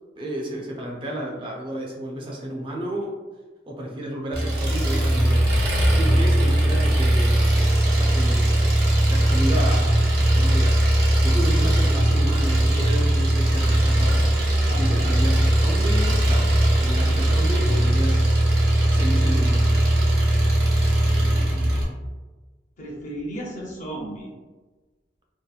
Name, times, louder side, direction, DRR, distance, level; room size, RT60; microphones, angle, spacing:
voice 1, 0.2-3.2 3.7-8.4 9.1-10.0 10.3-10.8 11.2-14.3 14.7-16.5 16.8-18.4 18.9-19.7, right 1 dB, 30° right, -1 dB, 0.4 m, -32 dB
Engine, 4.3-21.8, right 1 dB, 60° right, 0.7 m, -19 dB
voice 2, 14.6-15.2 21.0-21.9 22.8-24.3, right 1 dB, 40° left, -3 dB, 0.6 m, -36 dB
2.7 x 2.1 x 2.3 m, 1.3 s
head